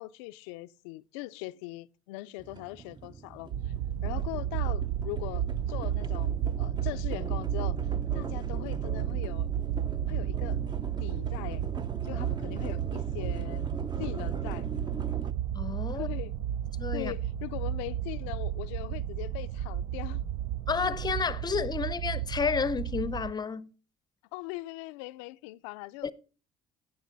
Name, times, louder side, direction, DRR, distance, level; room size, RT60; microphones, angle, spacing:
voice 1, 0.0-3.7 4.0-7.8 8.1-9.5 10.1-10.6 11.0-11.7 12.0-13.7 14.0-14.7 15.9-16.3 16.9-20.2 24.3-26.1, left 20 dB, 90° left, 0.4 m, -40 dB
sound 1, 2.4-15.3, right 4 dB, 30° right, 0.7 m, -41 dB
sound 2, 3.5-23.3, right 10 dB, 70° right, 0.5 m, -32 dB
voice 2, 15.5-16.1 16.8-17.1 20.7-23.7 26.0-26.1, left 5 dB, 30° left, 0.6 m, -31 dB
14.5 x 6.1 x 3.9 m
supercardioid pair, 80°, 15 cm